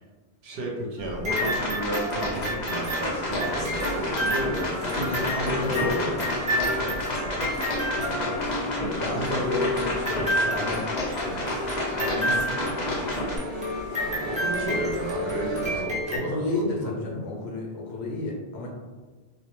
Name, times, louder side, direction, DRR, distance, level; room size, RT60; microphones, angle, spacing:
voice 1, 0.4-5.3 5.6-6.2 9.0-9.4 13.9-16.9, right 1 dB, 75° right, -1 dB, 0.8 m, -33 dB
sound 1, 1.0-8.9 9.8-16.2, equal, 10° right, 0.3 m, -31 dB
sound 2, 1.3-13.4, left 1 dB, 50° left, 0.6 m, -30 dB
sound 3, 2.6-15.8, left 1 dB, 30° left, 1.1 m, -34 dB
voice 2, 4.8-6.2 6.4-7.5 8.0-8.7 9.0-10.9 11.2-11.7 12.0-13.1 16.1-18.7, left 2 dB, 80° left, -1 dB, 0.9 m, -32 dB
2.3 x 2.1 x 3.0 m, 1.4 s
omnidirectional pair, 1.1 m